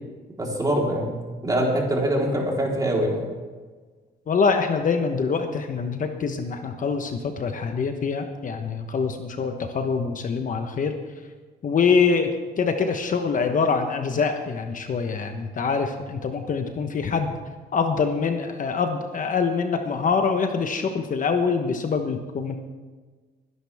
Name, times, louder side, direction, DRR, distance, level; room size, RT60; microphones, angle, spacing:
voice 1, 0.4-3.3, right 1 dB, 20° right, -2 dB, 3.9 m, -24 dB
voice 2, 4.3-10.9 11.6-12.3 12.6-17.4 17.7-22.6, left 5 dB, 45° left, 5 dB, 1.1 m, -24 dB
22.0 x 11.0 x 3.6 m, 1.4 s
cardioid pair, 110°, 19 cm